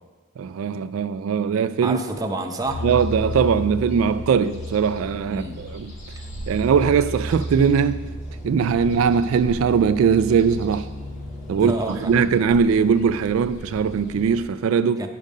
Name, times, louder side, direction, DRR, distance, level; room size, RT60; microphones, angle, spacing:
voice 1, 0.4-2.0 2.8-5.9 6.5-8.0 8.4-10.9 11.5-15.0, right 6 dB, 80° right, 0.3 m, -20 dB
voice 2, 1.8-2.8 5.3-5.6 11.6-12.3 15.0-15.1, right 2 dB, 20° right, 0.7 m, -29 dB
sound 1, 2.6-14.4, equal, 60° left, 2.0 m, -34 dB
9.3 x 5.2 x 5.3 m
head